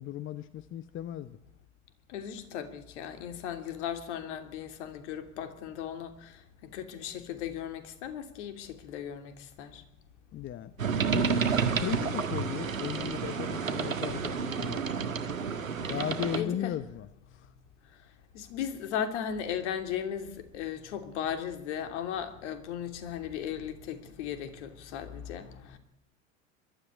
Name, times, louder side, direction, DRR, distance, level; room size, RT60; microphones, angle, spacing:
voice 1, 0.0-1.4 10.3-10.7 11.0-11.4 11.7-14.9 15.9-17.1 17.3-17.5, left 11 dB, 30° left, 1.0 m, -36 dB
voice 2, 2.1-6.4 6.7-9.8 16.3-16.7 18.3-25.8, left 9 dB, 60° left, 3.1 m, -36 dB
sound 1, 10.8-16.4, right 6 dB, 90° right, 1.7 m, -30 dB
22.0 x 13.0 x 9.5 m
hypercardioid pair, 90°, 39 cm